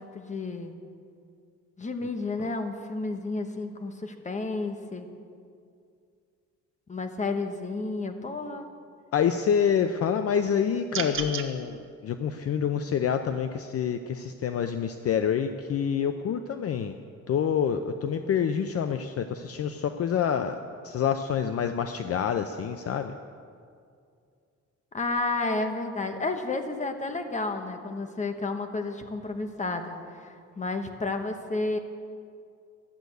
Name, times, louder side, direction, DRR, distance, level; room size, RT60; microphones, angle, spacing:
voice 1, 0.1-0.7 1.8-5.1 6.9-8.7 24.9-31.8, left 3 dB, 25° left, 6 dB, 1.2 m, -31 dB
voice 2, 9.1-16.9 17.3-20.6 20.8-23.1, left 8 dB, 50° left, 8 dB, 0.6 m, -27 dB
sound 1, 10.9-11.5, right 5 dB, 45° right, 1.2 m, -31 dB
13.0 x 8.1 x 9.2 m, 2.3 s
cardioid pair, 130°, 30 cm